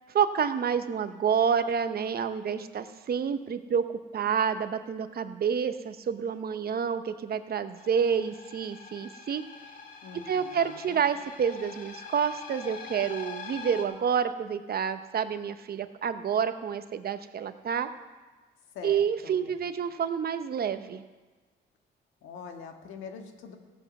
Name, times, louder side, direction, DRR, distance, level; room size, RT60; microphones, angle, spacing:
voice 1, 0.1-3.8 4.1-9.4 10.3-17.9 18.8-21.0, right 7 dB, 50° right, 10 dB, 0.9 m, -28 dB
sound 1, 7.8-13.8, left 4 dB, 45° left, 2.1 m, -44 dB
voice 2, 10.0-11.1 18.7-19.6 22.2-23.6, left 6 dB, 90° left, 4 dB, 1.6 m, -44 dB
16.0 x 8.0 x 6.1 m, 1.3 s
cardioid pair, 90°, 20 cm